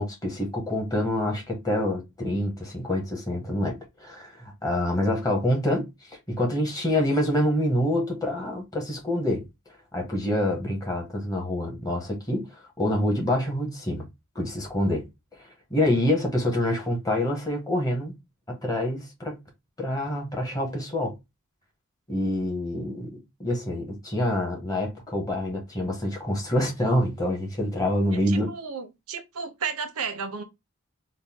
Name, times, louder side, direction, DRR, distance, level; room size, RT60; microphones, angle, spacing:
voice 1, 0.0-9.5 9.9-14.1 14.3-15.1 15.4-18.1 18.5-19.4 19.8-21.2 22.1-28.5, left 1 dB, 15° left, 1.3 m, -26 dB
voice 2, 28.1-30.4, right 5 dB, 90° right, 0.8 m, -33 dB
4.0 x 2.3 x 3.6 m
head